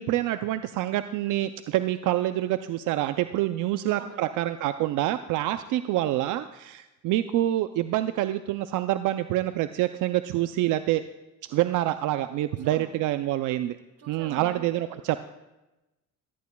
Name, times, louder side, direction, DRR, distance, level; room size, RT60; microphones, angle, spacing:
voice 1, 0.0-11.0 11.5-13.8 14.1-15.2, right 14 dB, 85° right, 11 dB, 0.5 m, -26 dB
voice 2, 3.7-4.4 12.5-13.0 14.0-15.2, right 6 dB, 55° right, 6 dB, 1.7 m, -45 dB
17.5 x 13.5 x 2.3 m, 1.0 s
cardioid pair, 90°, 30 cm